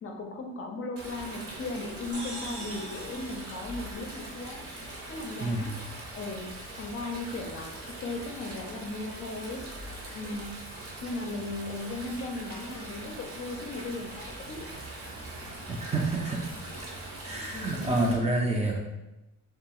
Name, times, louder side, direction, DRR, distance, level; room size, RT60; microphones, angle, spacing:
voice 1, 0.0-4.6 5.1-5.7 6.1-7.7 8.0-9.6 10.1-10.5 11.0-14.7 17.5-18.0, left 2 dB, 45° left, 1 dB, 0.5 m, -37 dB
Stream, 1.0-18.1, right 2 dB, 50° right, 0.8 m, -42 dB
sound 1, 2.1-4.7, right 2 dB, 75° right, 1.0 m, -44 dB
voice 2, 5.4-5.7 15.7-16.5 17.2-18.8, right 2 dB, 20° right, -1 dB, 0.5 m, -28 dB
2.3 x 2.2 x 2.9 m, 0.96 s
cardioid pair, 90°, 30 cm